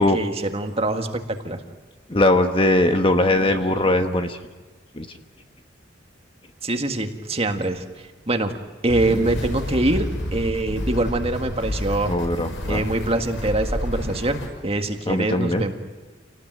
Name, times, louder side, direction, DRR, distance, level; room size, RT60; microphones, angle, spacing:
voice 1, 0.0-1.6 6.6-7.8 8.3-8.6 8.8-12.1 12.6-15.7, right 2 dB, 30° right, 5 dB, 1.8 m, -24 dB
voice 2, 2.1-4.4 4.9-5.1 12.1-12.8 15.1-15.7, left 1 dB, 25° left, 7 dB, 1.2 m, -20 dB
sound 1, 8.9-14.5, left 1 dB, 80° left, 5.4 m, -29 dB
28.5 x 19.0 x 9.3 m, 1.3 s
head